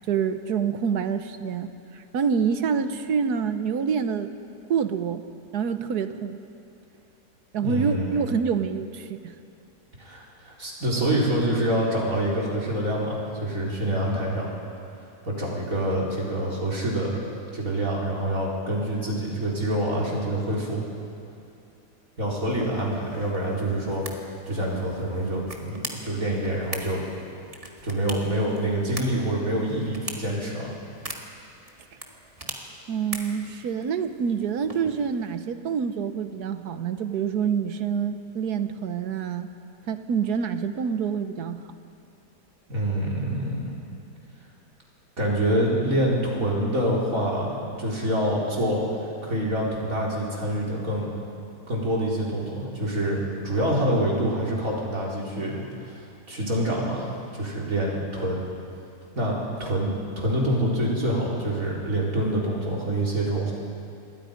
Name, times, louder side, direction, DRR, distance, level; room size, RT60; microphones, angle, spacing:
voice 1, 0.1-4.3 4.7-5.2 5.5-6.4 7.5-9.3 32.9-39.5 39.9-41.6, right 6 dB, 65° right, 10 dB, 1.5 m, -27 dB
voice 2, 7.6-8.3 10.0-14.5 15.2-17.1 17.5-20.8 22.2-24.0 24.5-27.0 27.8-30.8 42.7-43.7 45.2-48.8 49.2-51.1 51.7-53.2 53.4-58.4 59.1-63.5, right 1 dB, 50° right, -4 dB, 4.7 m, -26 dB
sound 1, 22.5-35.3, right 2 dB, 20° right, 1.8 m, -41 dB
27.0 x 22.0 x 5.2 m, 2.6 s
omnidirectional pair, 1.9 m